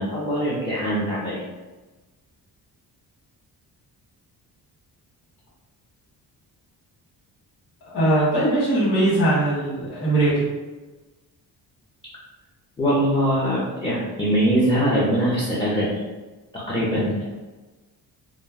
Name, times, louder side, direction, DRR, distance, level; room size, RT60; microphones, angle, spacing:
voice 1, 0.0-1.4 12.8-15.9 16.7-17.1, equal, 15° left, -8 dB, 0.5 m, -22 dB
voice 2, 7.9-10.4 16.9-17.0, right 1 dB, 80° left, -9 dB, 1.3 m, -20 dB
2.3 x 2.2 x 3.3 m, 1.2 s
cardioid pair, 125°, 39 cm